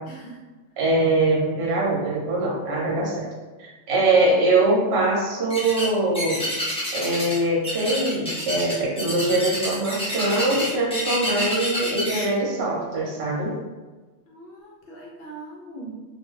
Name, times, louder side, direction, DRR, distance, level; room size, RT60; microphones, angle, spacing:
voice 1, 0.1-0.4 14.3-15.9, right 2 dB, 60° left, -4 dB, 0.7 m, -41 dB
voice 2, 0.8-3.3 3.6-6.4 6.9-13.5, right 2 dB, 60° right, -3 dB, 1.0 m, -22 dB
sound 1, 5.5-5.9 6.1-7.4 7.6-12.2, equal, 5° left, 0.6 m, -28 dB
2.4 x 2.3 x 3.0 m, 1.3 s
omnidirectional pair, 1.3 m